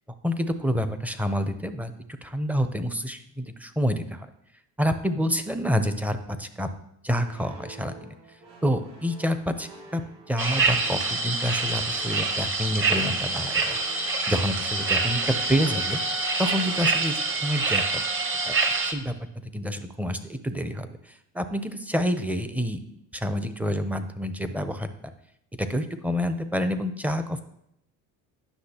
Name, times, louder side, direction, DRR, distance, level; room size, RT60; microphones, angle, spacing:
voice 1, 0.2-1.9 2.2-4.3 4.8-6.7 7.0-8.1 8.6-10.0 10.3-13.8 14.3-16.0 16.4-18.0 18.5-18.6 18.8-22.8 23.1-24.9 25.6-27.4, equal, 5° right, 9 dB, 0.5 m, -28 dB
sound 1, 7.2-18.1, right 2 dB, 70° right, 2.2 m, -49 dB
sound 2, 10.4-18.9, right 3 dB, 30° right, 1.0 m, -26 dB
10.0 x 6.0 x 2.9 m, 0.76 s
supercardioid pair, 90°, 41 cm